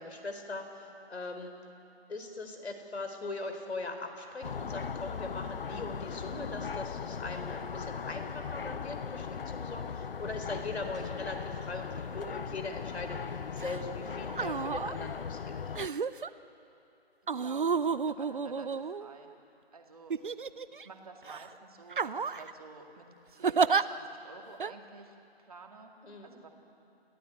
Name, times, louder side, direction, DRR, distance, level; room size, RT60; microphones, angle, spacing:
voice 1, 0.0-1.5 2.1-15.6 26.0-26.3, left 3 dB, 85° left, 6 dB, 4.1 m, -40 dB
sound 1, 4.4-15.9, left 6 dB, 60° left, 0.6 m, -38 dB
sound 2, 13.6-13.8 14.3-15.0 15.7-16.3 17.3-19.3 20.1-20.8 21.3-21.5 21.9-22.5 23.4-23.8 24.6-24.7, right 5 dB, 55° right, 0.6 m, -31 dB
voice 2, 17.4-19.3 19.7-20.1 20.7-25.9 26.2-26.5, right 3 dB, 35° right, 3 dB, 2.2 m, -51 dB
29.5 x 15.5 x 9.1 m, 2.8 s
hypercardioid pair, 180°, 32 cm